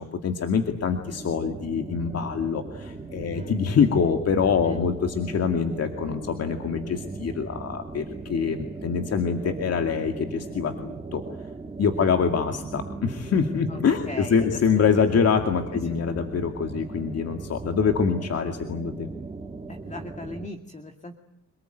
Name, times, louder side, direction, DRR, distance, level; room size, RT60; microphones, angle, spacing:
voice 1, 0.0-11.2 11.8-19.1, left 6 dB, 55° left, 5 dB, 2.4 m, -25 dB
sound 1, 0.9-20.5, right 3 dB, 20° right, 2.6 m, -38 dB
voice 2, 14.1-14.6 15.7-15.9 19.7-21.1, left 2 dB, 25° left, 4 dB, 2.4 m, -38 dB
27.0 x 19.5 x 9.3 m, 0.80 s
cardioid pair, 90°, 30 cm